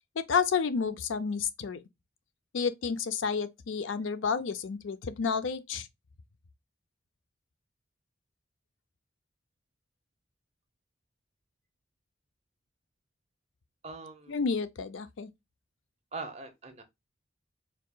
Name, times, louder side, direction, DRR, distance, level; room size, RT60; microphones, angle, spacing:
voice 1, 0.3-1.8 2.5-5.9 14.3-15.3, left 5 dB, 80° left, 0.5 m, -30 dB
voice 2, 13.8-14.4 16.1-16.8, right 3 dB, 35° right, 0.8 m, -41 dB
4.7 x 3.6 x 2.3 m
head